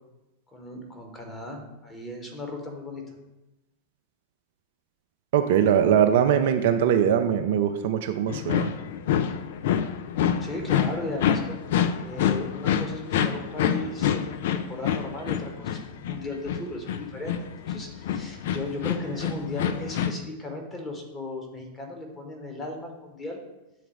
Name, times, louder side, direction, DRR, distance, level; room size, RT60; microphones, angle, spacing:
voice 1, 0.5-3.0 10.4-11.6 12.0-23.4, left 2 dB, 15° left, 2 dB, 1.4 m, -36 dB
voice 2, 5.3-8.7, right 9 dB, 55° right, 7 dB, 0.4 m, -21 dB
sound 1, 8.3-20.1, left 9 dB, 55° left, 0.4 m, -27 dB
7.1 x 3.9 x 4.6 m, 0.98 s
figure-of-eight pair, 90°, 0 cm